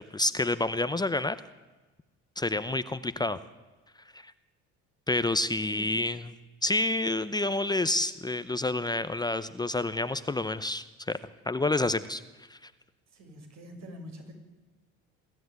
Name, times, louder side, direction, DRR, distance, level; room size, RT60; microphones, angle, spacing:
voice 1, 0.1-1.4 2.4-3.4 4.1-4.3 5.1-6.3 6.6-11.2 11.5-12.2 12.5-12.7, left 2 dB, 15° left, 13 dB, 0.8 m, -28 dB
voice 2, 13.1-14.3, equal, 60° right, 3 dB, 6.5 m, -45 dB
24.0 x 13.5 x 9.5 m, 1.2 s
cardioid pair, 105°, 30 cm